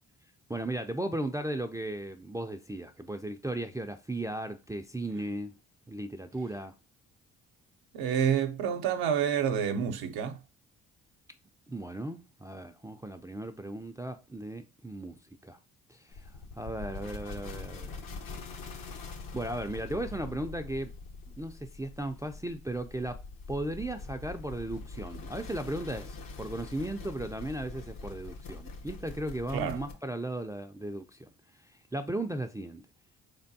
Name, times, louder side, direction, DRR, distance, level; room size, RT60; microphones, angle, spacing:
voice 1, 0.5-5.5 5.9-6.8 11.7-15.2 15.4-15.6 15.9-18.0 19.3-20.9 21.4-31.3 31.6-32.8, right 1 dB, 10° right, 0.4 m, -36 dB
voice 2, 7.9-10.4 29.5-29.8, right 8 dB, 75° right, 0.6 m, -28 dB
sound 1, 16.1-29.9, left 3 dB, 60° left, 0.8 m, -43 dB
3.7 x 3.4 x 2.6 m
supercardioid pair, 60°, 36 cm